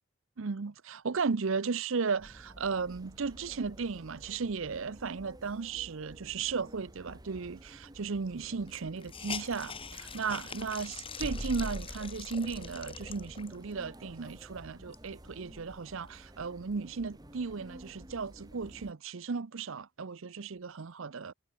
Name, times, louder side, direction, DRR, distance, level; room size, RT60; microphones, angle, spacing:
voice 1, 0.4-21.3, right 5 dB, 65° right, 0.6 m, -35 dB
sound 1, 2.2-18.9, equal, 15° right, 1.8 m, -48 dB
Hiss, 7.8-7.9 8.1-8.2 8.7-13.7 14.3-14.4 14.7-16.1, left 6 dB, 25° left, 3.3 m, -44 dB
head